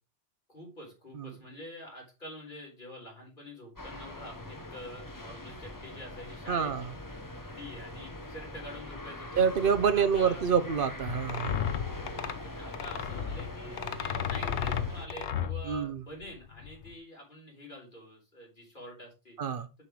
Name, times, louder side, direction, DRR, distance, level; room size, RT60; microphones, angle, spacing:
voice 1, 0.5-6.9 7.5-10.5 12.0-19.4, equal, 45° left, 4.3 m, -46 dB
sound 1, 3.8-15.1, left 1 dB, 20° left, 1.1 m, -43 dB
voice 2, 6.5-6.9 9.4-11.6 15.7-16.0 19.4-19.7, right 7 dB, 55° right, 1.0 m, -27 dB
sound 2, 11.1-16.9, left 8 dB, 80° left, 1.1 m, -34 dB
6.9 x 5.7 x 4.6 m
omnidirectional pair, 1.1 m